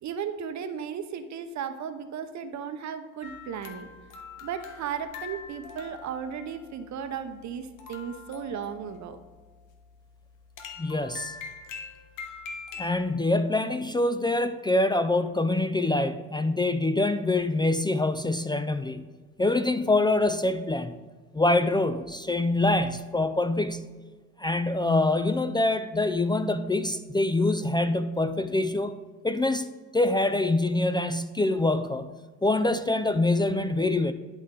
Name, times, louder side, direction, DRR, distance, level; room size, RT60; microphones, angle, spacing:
voice 1, 0.0-3.9 4.4-9.2, right 7 dB, 65° right, 9 dB, 0.8 m, -35 dB
sound 1, 3.2-13.1, left 6 dB, 90° left, 1.0 m, -44 dB
voice 2, 10.8-11.3 12.8-19.0 19.4-20.9 21.3-23.9 24.4-28.9 29.2-29.7 29.9-32.1 32.4-34.1, left 2 dB, 15° left, 10 dB, 0.3 m, -25 dB
10.5 x 4.1 x 3.8 m, 1.3 s
cardioid pair, 90°, 30 cm